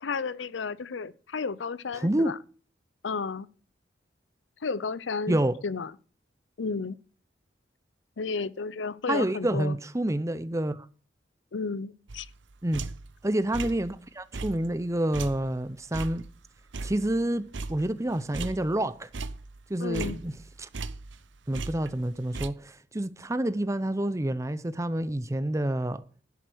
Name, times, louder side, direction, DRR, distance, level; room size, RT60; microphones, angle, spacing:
voice 1, 0.0-2.4 3.0-3.5 4.6-5.9 6.6-7.0 8.2-9.8 11.5-12.3 19.8-20.2, left 4 dB, 80° left, 0.6 m, -32 dB
voice 2, 2.0-2.4 5.3-5.6 9.1-10.9 12.6-12.8 13.2-16.3 16.8-19.1 19.7-20.3 20.6-20.7 21.5-26.0, right 1 dB, 15° right, 0.6 m, -28 dB
sound 1, 12.1-13.2 13.5-14.0 14.3-17.3 17.5-18.8 19.1-21.3 21.5-22.5, right 3 dB, 80° right, 0.8 m, -38 dB
11.0 x 8.0 x 6.3 m
head